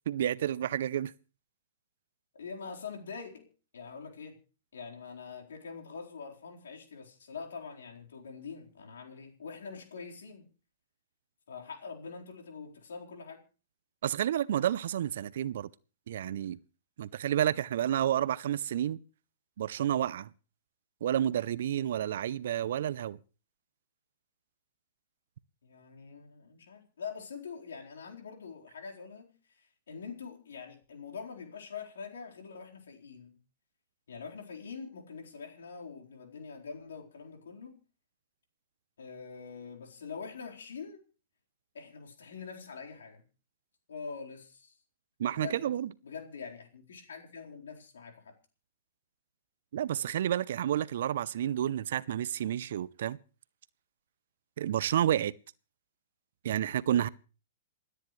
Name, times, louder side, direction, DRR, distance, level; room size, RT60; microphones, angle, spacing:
voice 1, 0.1-1.1 14.0-15.7 16.1-16.6 17.0-19.0 19.6-20.3 21.0-23.2 45.2-45.9 49.7-53.2 54.6-55.3 56.4-57.1, right 11 dB, 65° right, 0.6 m, -30 dB
voice 2, 2.4-4.4 4.7-10.5 11.5-13.4 25.6-33.4 34.1-37.8 39.0-41.0 41.7-43.2 43.9-44.8 45.3-45.7 46.0-48.3, left 5 dB, 75° left, 4.3 m, -44 dB
28.0 x 9.9 x 3.2 m
hypercardioid pair, 120°, 0 cm